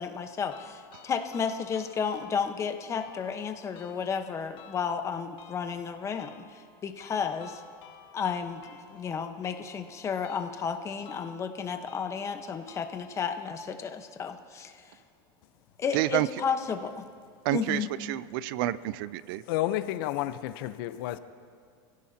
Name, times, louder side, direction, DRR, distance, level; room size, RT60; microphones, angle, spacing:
voice 1, 0.0-7.6 8.1-14.8 15.8-17.0 17.5-17.9, left 6 dB, 25° left, 6 dB, 1.1 m, -32 dB
sound 1, 0.5-13.5, left 8 dB, 40° left, 1.9 m, -54 dB
voice 2, 15.9-16.3 17.4-19.4, right 15 dB, 60° right, 17 dB, 0.5 m, -29 dB
voice 3, 19.5-21.2, left 14 dB, 65° left, 12 dB, 0.8 m, -30 dB
27.5 x 16.5 x 2.9 m, 2.2 s
supercardioid pair, 140°, 13 cm